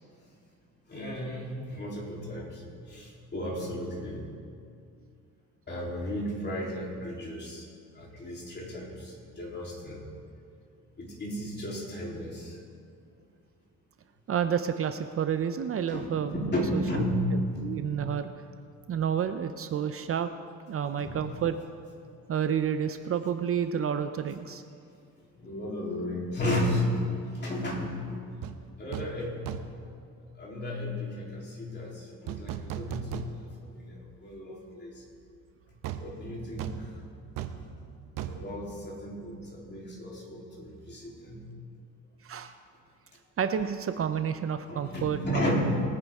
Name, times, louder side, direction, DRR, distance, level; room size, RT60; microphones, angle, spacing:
voice 1, 0.9-4.2 5.7-7.7 7.9-10.0 11.0-12.6 15.9-17.8 21.0-21.3 25.3-27.0 27.3-28.1 28.8-29.5 30.4-35.0 35.9-36.9 38.3-41.5 44.6-45.8, left 1 dB, 35° left, -3 dB, 3.4 m, -34 dB
voice 2, 14.3-17.0 17.6-18.3 18.9-20.3 20.7-21.6 22.3-24.6 42.2-42.5 43.4-45.4, right 8 dB, 45° right, 9 dB, 0.6 m, -30 dB
sound 1, 28.4-28.6 28.9-29.2 29.5-29.9 32.3-33.7 34.1-34.2 35.8-39.5 39.8-39.9, right 10 dB, 90° right, 0.8 m, -38 dB
22.0 x 9.6 x 3.6 m, 2.3 s
cardioid pair, 115°, 32 cm